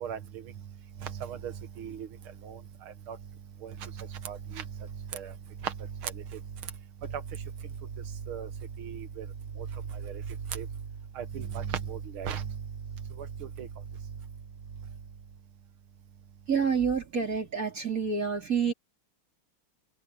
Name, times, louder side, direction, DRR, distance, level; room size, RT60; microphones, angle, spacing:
voice 1, 1.0-1.5 1.8-2.1 2.4-2.6 3.1-3.2 3.6-3.9 4.3-4.6 5.1-5.3 5.6-5.7 6.0-6.1 8.3-8.5 8.8-9.3 10.0-10.2 10.5-10.7 11.2-12.4 13.6-13.7, right 8 dB, 85° right, 2.2 m, -35 dB
voice 2, 16.5-18.7, right 6 dB, 40° right, 4.0 m, -28 dB
omnidirectional pair, 2.3 m